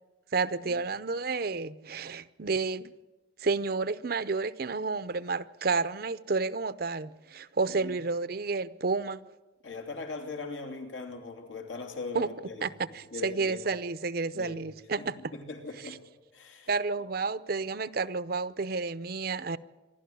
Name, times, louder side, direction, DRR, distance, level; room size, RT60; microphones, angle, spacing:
voice 1, 0.3-2.9 3.4-9.2 12.1-12.3 12.6-15.3 16.7-19.6, right 4 dB, 50° right, 0.6 m, -31 dB
voice 2, 9.6-12.6 12.9-13.6 14.3-14.6 15.0-16.0 16.3-16.7, left 3 dB, 80° left, 3.0 m, -40 dB
26.5 x 12.0 x 9.3 m
head